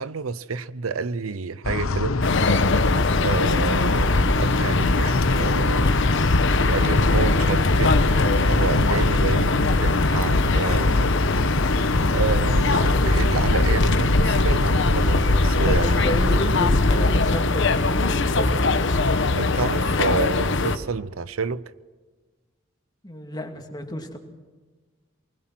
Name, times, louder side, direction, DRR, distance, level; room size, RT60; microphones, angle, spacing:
voice 1, 0.0-2.2 3.2-6.0 6.7-11.1 12.1-15.9 16.3-16.5 19.4-21.6, right 5 dB, 90° right, 0.7 m, -29 dB
sound 1, 1.6-17.4, left 2 dB, 85° left, 1.0 m, -23 dB
sound 2, 2.2-20.8, left 3 dB, 60° left, 1.1 m, -22 dB
voice 2, 15.7-18.6 23.0-24.2, equal, 20° left, 2.4 m, -31 dB
24.5 x 20.0 x 6.1 m
head